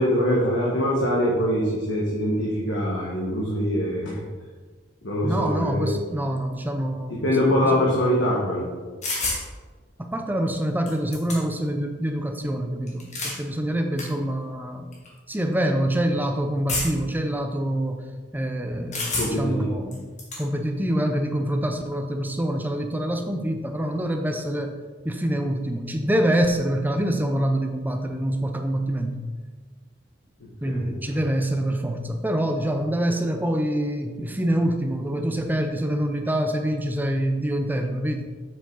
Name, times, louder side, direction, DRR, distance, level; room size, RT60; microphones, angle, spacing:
voice 1, 0.0-4.1 5.0-5.9 7.1-8.7 19.1-19.7 30.7-31.1, equal, 70° left, -4 dB, 1.5 m, -23 dB
voice 2, 5.2-7.4 7.6-7.8 10.0-14.9 15.3-18.1 18.3-20.0 20.4-24.8 25.0-29.2 30.6-38.3, right 1 dB, 10° right, 5 dB, 0.6 m, -25 dB
sound 1, 9.0-9.4 10.5-10.6 10.9-11.7 12.9-13.4 14.0-14.1 14.9-15.1 16.7-17.1 18.9-19.5 19.9-20.4, left 2 dB, 35° left, 1.8 m, -29 dB
7.6 x 6.5 x 4.0 m, 1.4 s
head